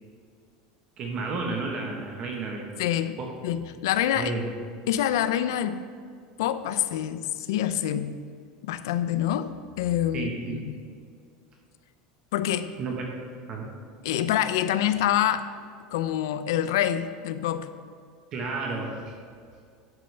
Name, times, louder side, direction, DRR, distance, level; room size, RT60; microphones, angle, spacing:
voice 1, 1.0-2.7 3.2-3.3 4.1-4.5 10.1-10.6 12.8-12.9 13.5-13.7 18.3-19.1, right 3 dB, 35° right, 0 dB, 1.0 m, -32 dB
voice 2, 2.8-3.2 3.4-4.3 4.9-5.8 6.4-8.1 8.6-10.8 12.3-12.7 14.0-15.4 15.9-17.7, left 11 dB, 85° left, 12 dB, 0.4 m, -26 dB
10.5 x 6.5 x 3.3 m, 2.2 s
supercardioid pair, 160°, 2 cm